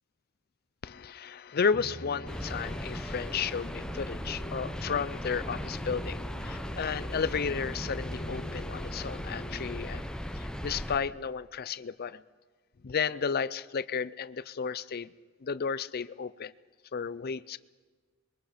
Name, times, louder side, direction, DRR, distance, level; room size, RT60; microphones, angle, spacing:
voice 1, 0.8-10.0 10.4-12.2 12.8-15.1 15.4-16.5 16.9-17.6, left 6 dB, 50° left, 17 dB, 0.5 m, -33 dB
Musical instrument, 1.7-10.2, left 2 dB, 30° left, 1.5 m, -45 dB
sound 1, 2.3-11.0, equal, 5° left, 0.9 m, -37 dB
25.5 x 22.5 x 5.0 m, 1.4 s
head